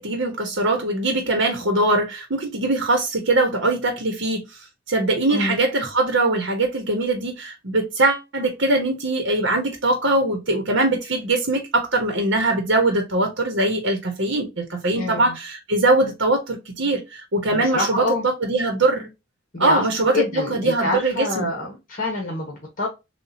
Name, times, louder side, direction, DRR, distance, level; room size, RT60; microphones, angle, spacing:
voice 1, 0.0-4.6 4.9-19.1 19.6-21.5, right 2 dB, 70° right, 1.3 m, -22 dB
voice 2, 14.9-15.3 17.5-18.3 19.5-19.9 20.1-22.9, left 2 dB, 45° left, 1.6 m, -26 dB
7.1 x 2.6 x 2.8 m
head